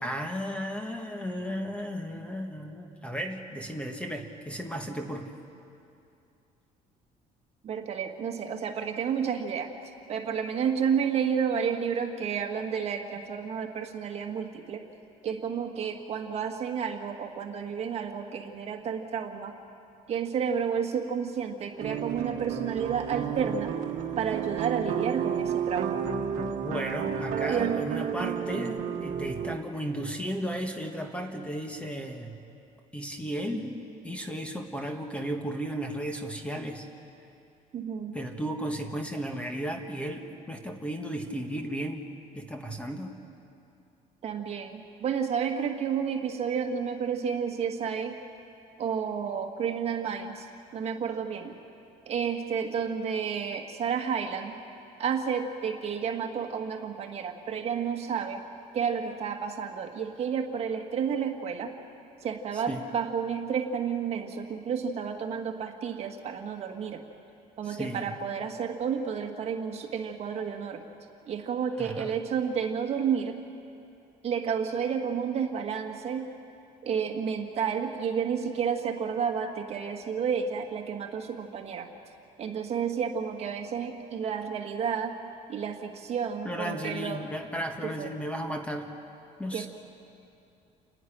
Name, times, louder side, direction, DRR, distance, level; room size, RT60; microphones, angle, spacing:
voice 1, 0.0-5.3 26.3-32.4 32.9-36.9 38.1-42.1 42.3-43.1 62.5-62.8 67.6-68.1 71.8-72.1 86.4-88.9 89.4-89.7, equal, 10° left, 4 dB, 1.5 m, -34 dB
voice 2, 7.6-9.7 10.1-14.8 15.2-19.5 20.1-23.8 24.2-26.1 27.5-27.7 33.5-33.6 37.7-38.2 44.2-48.2 48.8-50.5 50.7-51.5 52.0-54.6 55.0-58.4 58.7-61.7 62.2-67.0 67.6-70.8 71.3-73.4 74.2-76.3 76.8-81.9 82.4-85.2 85.5-87.3 87.8-88.1 89.5-89.7, right 7 dB, 45° right, 4 dB, 1.7 m, -31 dB
sound 1, 21.8-29.6, right 7 dB, 65° right, 1.4 m, -31 dB
29.0 x 11.0 x 10.0 m, 2.7 s
cardioid pair, 145°, 14 cm